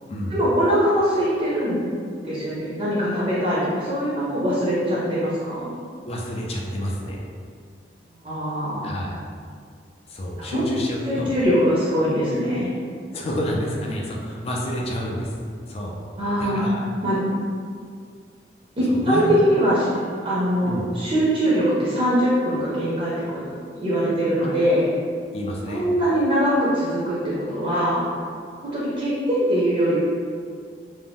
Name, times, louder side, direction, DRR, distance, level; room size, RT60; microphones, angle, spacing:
voice 1, 0.3-1.8 2.2-5.7 8.2-9.0 10.4-10.7 11.1-12.7 16.2-16.6 17.0-17.2 18.8-19.8 20.2-24.9 25.7-28.0 28.6-30.0, equal, 35° right, -8 dB, 0.5 m, -22 dB
voice 2, 6.0-7.2 8.8-9.1 10.1-11.3 13.1-15.3 15.7-15.9 16.4-16.8 18.9-19.4 20.7-20.8 24.4-24.5 25.3-25.9, equal, 35° left, -1 dB, 0.4 m, -29 dB
2.5 x 2.1 x 3.4 m, 2.2 s
head